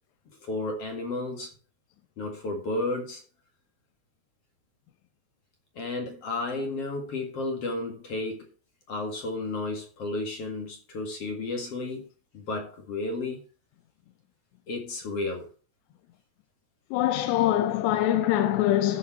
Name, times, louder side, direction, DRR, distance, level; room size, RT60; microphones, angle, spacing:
voice 1, 0.4-1.5 2.2-3.2 5.7-8.5 8.9-12.1 12.3-13.4 14.7-15.5, left 2 dB, 45° left, 2.4 m, -32 dB
voice 2, 16.9-19.0, left 12 dB, 85° left, 2.9 m, -23 dB
13.5 x 5.7 x 4.3 m
omnidirectional pair, 4.8 m